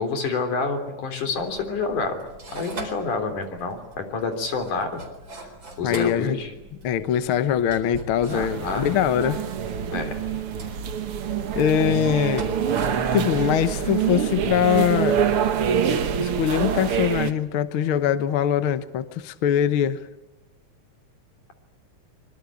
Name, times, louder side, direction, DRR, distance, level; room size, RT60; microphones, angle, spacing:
voice 1, 0.0-2.2 2.5-5.0 5.8-6.5 8.3-8.9 9.9-10.2, left 4 dB, 85° left, 5.0 m, -28 dB
sound 1, 1.3-14.1, right 2 dB, 35° right, 4.8 m, -42 dB
voice 2, 5.8-6.4 6.8-9.4 11.5-12.5 13.1-15.2 16.2-20.0, left 9 dB, 55° left, 1.6 m, -22 dB
sound 2, 8.3-17.3, right 8 dB, 55° right, 2.0 m, -25 dB
25.0 x 24.0 x 8.4 m
omnidirectional pair, 3.5 m